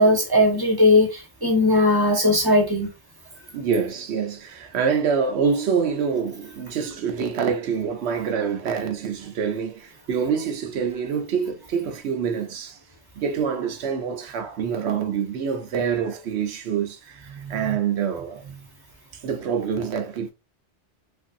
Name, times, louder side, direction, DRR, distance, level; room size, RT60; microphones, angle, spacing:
voice 1, 0.0-2.9 17.3-17.8, left 1 dB, 20° right, 0.8 m, -19 dB
voice 2, 3.5-12.8 13.2-18.4 19.2-20.3, right 6 dB, 70° right, 0.9 m, -26 dB
3.3 x 2.6 x 2.5 m
omnidirectional pair, 1.2 m